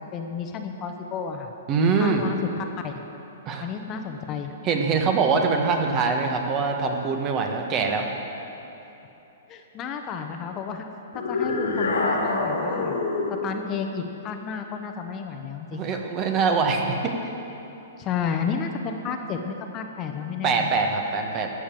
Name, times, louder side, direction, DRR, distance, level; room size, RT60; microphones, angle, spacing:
voice 1, 0.1-1.5 2.0-3.0 3.6-4.5 9.5-10.9 11.1-13.0 13.4-16.0 18.0-20.7, left 6 dB, 30° left, 5 dB, 0.9 m, -32 dB
voice 2, 1.7-2.2 3.4-3.7 4.6-8.1 15.7-17.1 20.4-21.5, right 4 dB, 30° right, 3 dB, 1.3 m, -23 dB
sound 1, 11.1-13.4, left 3 dB, 85° left, 2.1 m, -25 dB
12.5 x 7.0 x 7.6 m, 3.0 s
hypercardioid pair, 135°, 0 cm